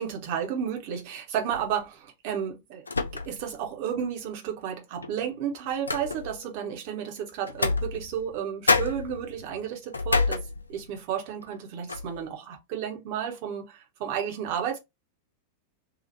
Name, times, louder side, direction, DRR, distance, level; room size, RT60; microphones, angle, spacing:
voice 1, 0.0-2.9 3.1-14.8, right 8 dB, 45° right, 1.0 m, -32 dB
sound 1, 1.5-1.8 2.9-3.6 4.0-4.1 5.0-6.5 7.5-8.4 8.7-11.0 11.4-11.6 11.9-12.2, left 3 dB, 80° left, 0.4 m, -29 dB
2.9 x 2.4 x 4.0 m
figure-of-eight pair, 90°, 0 cm